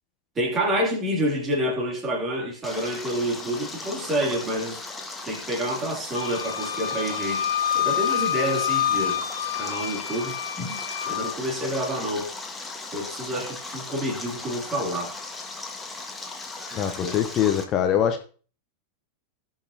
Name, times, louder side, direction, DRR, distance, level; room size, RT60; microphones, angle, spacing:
voice 1, 0.3-4.8 5.3-9.2 9.5-10.8 11.1-12.3 12.9-15.2 16.6-17.2, equal, 25° right, 2.9 m, -28 dB
Stream, 2.6-17.6, left 3 dB, 10° left, 1.6 m, -37 dB
Wind instrument woodwind instrument, 6.1-11.4, left 9 dB, 65° left, 0.9 m, -27 dB
voice 2, 16.7-18.2, left 9 dB, 30° left, 0.9 m, -23 dB
17.5 x 5.8 x 2.8 m
figure-of-eight pair, 90°, 0 cm